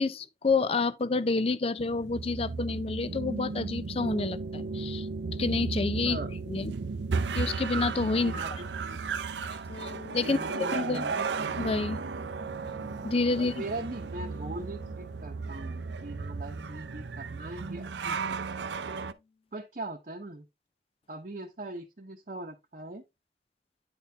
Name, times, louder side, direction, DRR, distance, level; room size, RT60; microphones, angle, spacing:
voice 1, 0.0-5.1 5.4-6.2 6.5-6.7 7.3-8.3 9.8-11.1 11.6-12.0 13.0-13.6, left 3 dB, 35° left, 0.5 m, -29 dB
sound 1, 1.8-19.1, right 4 dB, 85° right, 0.6 m, -34 dB
voice 2, 8.2-9.2 10.2-11.3 13.4-18.6 19.5-20.5 21.1-23.0, right 2 dB, 45° right, 0.9 m, -41 dB
sound 2, 9.7-19.4, left 4 dB, 75° left, 1.8 m, -52 dB
9.6 x 4.3 x 3.4 m
head